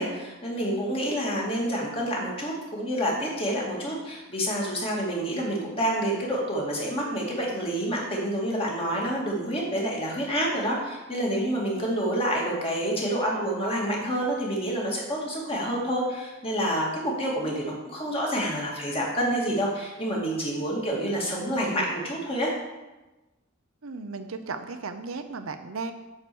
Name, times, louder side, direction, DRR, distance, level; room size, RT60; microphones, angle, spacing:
voice 1, 0.0-22.5, equal, 25° left, -3 dB, 2.5 m, -28 dB
voice 2, 23.8-25.9, right 4 dB, 70° right, 8 dB, 0.7 m, -35 dB
9.0 x 4.7 x 7.0 m, 1.1 s
head